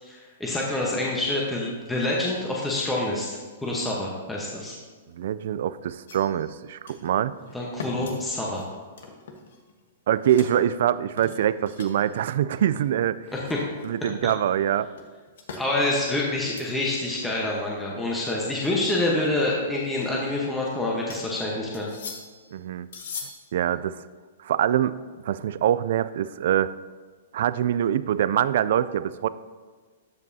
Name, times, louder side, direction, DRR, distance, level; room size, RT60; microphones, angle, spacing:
voice 1, 0.0-4.8 7.5-8.7 13.3-13.6 15.6-21.9, left 2 dB, 5° left, -4 dB, 1.0 m, -27 dB
voice 2, 5.1-7.4 10.1-13.2 13.8-14.9 22.5-22.9 23.5-24.0 24.4-25.0 25.2-26.7 27.3-29.3, right 10 dB, 65° right, 15 dB, 0.3 m, -24 dB
sound 1, 6.1-6.6 6.9-7.1 7.5-9.8 10.1-10.6 11.2-12.2 12.5-12.8 13.2-14.1 15.0-15.7 16.1-16.7 17.1-17.2 17.5-17.6 18.3-18.7 19.7-20.7 21.1-21.4 21.7-22.5 22.9-23.5, left 5 dB, 70° left, 1.2 m, -41 dB
13.5 x 5.3 x 2.7 m, 1.5 s
hypercardioid pair, 140°, 0 cm